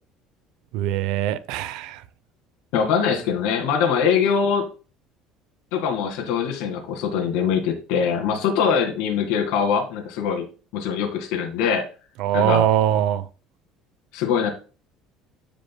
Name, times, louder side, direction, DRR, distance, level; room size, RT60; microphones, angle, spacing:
voice 1, 0.7-2.0 12.2-13.3, right 11 dB, 65° right, 0.6 m, -22 dB
voice 2, 2.7-4.7 5.7-10.4 10.7-11.8 12.3-12.7 14.1-14.5, left 7 dB, 75° left, 2.0 m, -22 dB
14.5 x 5.1 x 2.3 m
cardioid pair, 160°, 0 cm